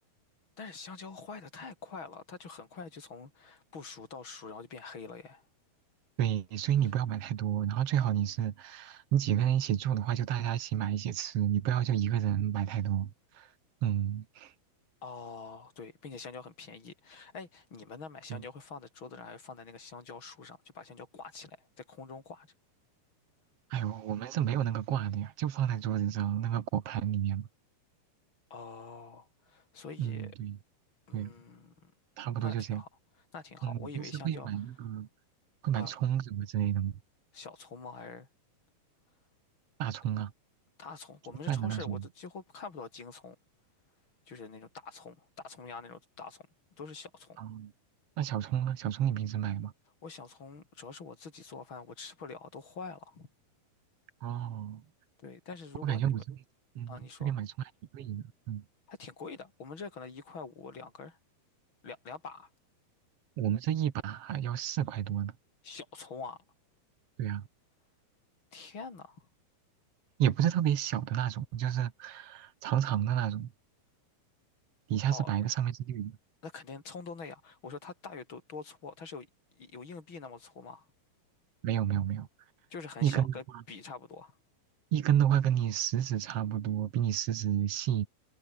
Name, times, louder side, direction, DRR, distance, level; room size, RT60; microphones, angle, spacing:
voice 1, 0.6-5.4 15.0-22.5 28.5-30.3 31.1-31.9 32.4-32.9 33.3-34.5 35.8-35.9 37.3-38.3 40.8-43.3 44.3-46.5 46.8-47.4 50.0-53.3 55.2-56.2 56.9-57.3 58.9-61.2 61.8-62.5 65.6-66.4 68.5-69.3 75.1-75.3 76.4-79.3 79.6-80.9 82.7-84.4, left 4 dB, 30° left, 4.7 m, -45 dB
voice 2, 6.2-13.1 13.4-13.5 13.8-14.5 18.3-18.4 23.7-27.5 30.0-30.6 31.1-31.3 32.2-32.8 33.6-35.1 35.6-36.9 39.8-40.3 41.5-42.0 47.4-47.7 48.2-49.7 54.2-54.8 55.8-56.2 56.8-56.9 57.2-57.5 57.9-58.6 63.4-65.3 67.2-67.4 70.2-73.5 74.9-76.1 81.6-82.3 83.0-83.3 84.9-88.1, right 10 dB, 60° right, 1.7 m, -30 dB
omnidirectional pair, 4.5 m